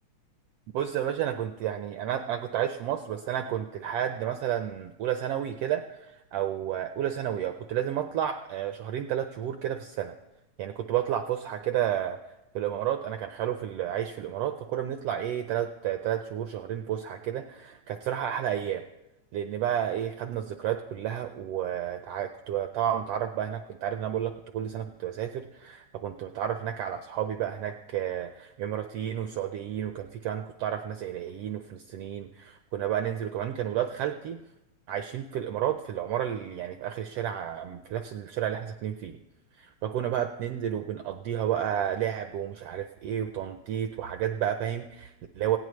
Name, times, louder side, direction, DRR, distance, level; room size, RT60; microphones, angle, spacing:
voice 1, 0.7-10.1 10.6-12.2 12.5-18.8 19.3-34.4 34.9-39.2 39.6-45.6, right 10 dB, 85° right, 7 dB, 1.4 m, -31 dB
18.5 x 16.5 x 3.1 m, 0.96 s
omnidirectional pair, 3.4 m